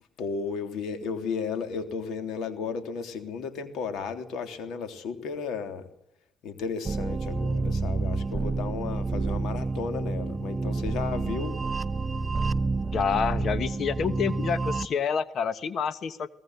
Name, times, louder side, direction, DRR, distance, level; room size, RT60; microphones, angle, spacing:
voice 1, 0.2-5.8 6.4-11.6, left 5 dB, 85° left, 8 dB, 3.3 m, -34 dB
sound 1, 6.9-14.9, right 3 dB, 25° right, 1.0 m, -29 dB
voice 2, 12.9-16.3, left 6 dB, 60° left, 14 dB, 1.3 m, -28 dB
24.0 x 18.5 x 8.0 m, 0.79 s
cardioid pair, 90°, 0 cm